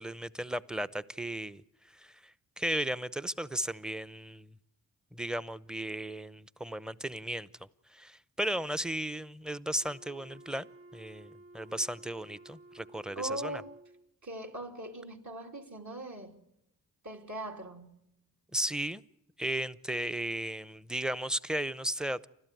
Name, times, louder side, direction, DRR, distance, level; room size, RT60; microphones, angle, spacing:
voice 1, 0.0-1.6 1.9-4.5 5.1-7.5 7.9-13.6 18.5-19.0 19.4-22.3, right 1 dB, ahead, 0.8 m, -35 dB
Wind instrument woodwind instrument, 9.8-14.1, right 1 dB, 35° right, 3.6 m, -54 dB
voice 2, 13.1-13.8 14.2-16.4 17.0-17.9, right 1 dB, 50° right, 3.3 m, -40 dB
29.0 x 12.5 x 9.3 m
supercardioid pair, 45°, 36 cm